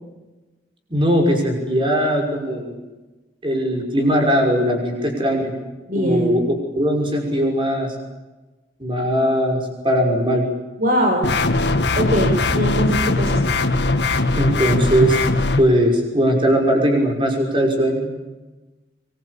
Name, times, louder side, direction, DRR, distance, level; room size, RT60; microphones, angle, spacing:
voice 1, 0.9-2.8 3.4-5.5 5.9-8.0 8.8-10.5 14.3-15.2 15.6-18.1, equal, 30° right, 2 dB, 5.9 m, -19 dB
voice 2, 5.9-6.2 10.8-11.3 12.0-13.5, equal, 50° right, 1 dB, 5.1 m, -21 dB
sound 1, 11.2-15.6, left 2 dB, 80° left, 1.8 m, -20 dB
24.5 x 23.0 x 8.6 m, 1.2 s
head